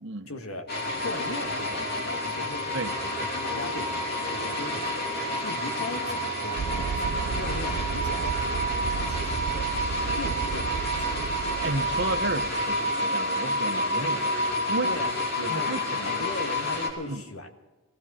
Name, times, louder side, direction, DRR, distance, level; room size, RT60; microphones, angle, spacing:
voice 1, 0.3-0.7 1.0-2.6 3.2-9.7 10.1-11.3 13.9-14.2 14.8-17.5, left 2 dB, 85° left, 4 dB, 1.9 m, -39 dB
sound 1, 0.7-16.9, equal, 50° left, 3.1 m, -29 dB
sound 2, 6.6-12.8, right 5 dB, 75° right, 0.5 m, -34 dB
voice 2, 11.6-14.2 14.7-14.9 15.4-16.1 17.1-17.2, right 2 dB, 55° right, 7 dB, 1.0 m, -32 dB
19.5 x 15.5 x 4.3 m, 1.2 s
head